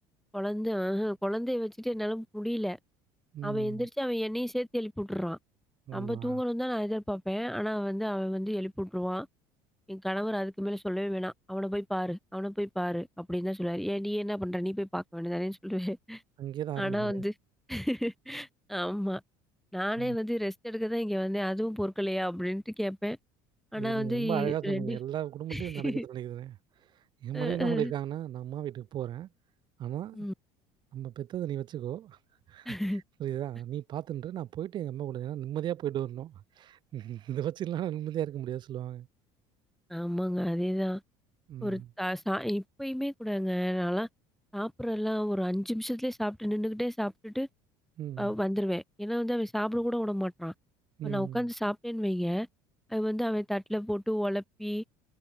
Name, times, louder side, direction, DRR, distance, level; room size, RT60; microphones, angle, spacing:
voice 1, 0.3-2.8 3.4-5.4 5.9-9.3 9.9-16.2 16.8-17.3 17.7-19.2 19.7-23.2 23.7-25.0 25.5-26.1 27.3-27.9 30.1-30.3 32.7-33.0 39.9-41.0 41.6-44.1 44.5-47.5 48.2-50.5 51.0-52.5 52.9-54.8, equal, ahead, 0.5 m, -31 dB
voice 2, 3.3-3.9 5.9-6.4 16.4-17.2 20.0-20.2 23.7-26.6 27.2-29.3 29.8-30.3 30.9-32.2 32.5-32.7 33.2-39.1 41.5-41.9 48.0-48.3 51.0-51.4, right 11 dB, 45° right, 1.2 m, -35 dB
cardioid pair, 125°, 11 cm